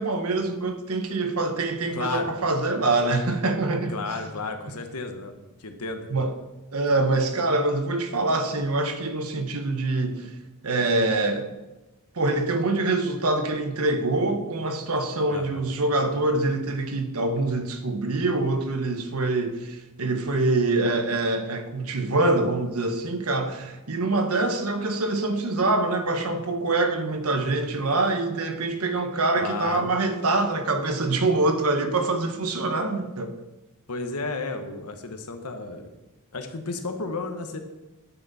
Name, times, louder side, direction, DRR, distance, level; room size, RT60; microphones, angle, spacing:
voice 1, 0.0-4.3 6.1-6.3 6.7-10.3 10.6-11.5 12.1-33.3, right 2 dB, 75° right, 1.2 m, -25 dB
voice 2, 1.9-2.3 3.9-5.3 5.6-6.1 15.3-15.6 29.3-29.9 33.9-35.9 36.3-37.6, left 3 dB, 80° left, 1.2 m, -32 dB
9.7 x 9.3 x 4.2 m
head